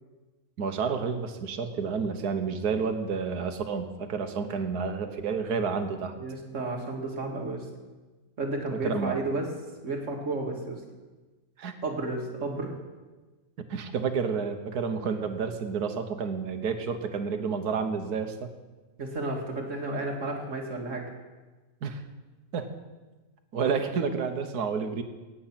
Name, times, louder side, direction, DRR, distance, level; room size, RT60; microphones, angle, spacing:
voice 1, 0.6-6.1 8.7-9.2 11.6-11.7 13.7-18.5 21.8-22.0 22.5-22.7 23.5-25.0, right 5 dB, 80° right, 8 dB, 1.6 m, -30 dB
voice 2, 6.2-7.7 8.4-9.5 9.8-10.8 11.8-12.7 19.0-21.0, right 2 dB, 50° right, 1 dB, 2.3 m, -32 dB
17.0 x 8.6 x 5.9 m, 1.2 s
omnidirectional pair, 1.6 m